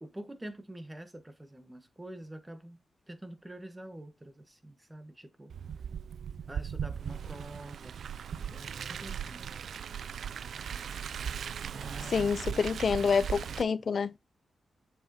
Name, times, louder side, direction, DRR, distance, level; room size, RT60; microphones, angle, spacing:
voice 1, 0.0-2.8 3.1-5.5 6.5-8.0 8.3-9.5 11.7-12.3 13.8-13.9, right 1 dB, 15° right, 1.5 m, -46 dB
Car, 5.5-13.6, right 8 dB, 75° right, 0.3 m, -38 dB
voice 2, 12.1-14.1, left 5 dB, 60° left, 0.6 m, -27 dB
7.2 x 5.0 x 2.9 m
cardioid pair, 60°, 0 cm